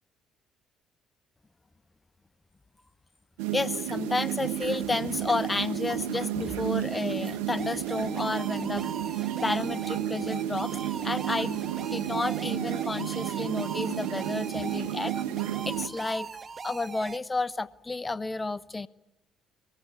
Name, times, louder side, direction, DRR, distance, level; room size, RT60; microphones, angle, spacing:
sound 1, 3.4-15.9, right 12 dB, 85° right, 1.3 m, -32 dB
voice 1, 3.5-8.9 9.2-15.1 15.7-16.3 16.6-18.9, left 3 dB, 20° left, 18 dB, 0.9 m, -31 dB
sound 2, 7.6-17.2, right 5 dB, 40° right, 1.5 m, -41 dB
23.5 x 20.0 x 9.8 m, 0.96 s
hypercardioid pair, 60°, 0 cm